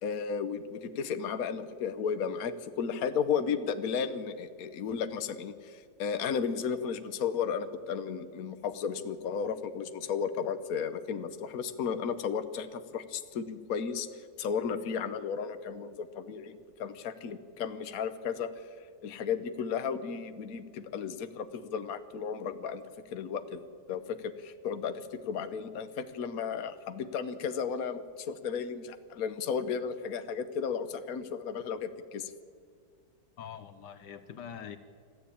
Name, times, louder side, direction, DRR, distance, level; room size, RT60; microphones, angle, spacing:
voice 1, 0.0-18.6 19.0-23.6 23.9-32.3, left 6 dB, 55° left, 10 dB, 1.4 m, -34 dB
voice 2, 33.4-34.8, left 8 dB, 75° left, 11 dB, 1.5 m, -44 dB
25.0 x 14.5 x 8.7 m, 2.1 s
omnidirectional pair, 1.9 m